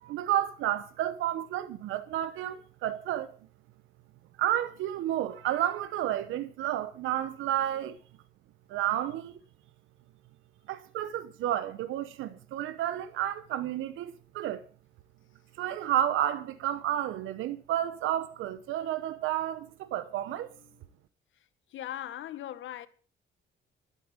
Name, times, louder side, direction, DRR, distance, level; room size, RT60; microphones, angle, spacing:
voice 1, 0.0-3.3 4.4-8.0 8.7-9.3 10.7-14.6 15.6-20.5, right 11 dB, 90° right, 0.9 m, -31 dB
voice 2, 20.3-20.8 21.7-22.9, left 12 dB, 75° left, 1.4 m, -41 dB
12.0 x 8.5 x 8.6 m
cardioid pair, 90°, 20 cm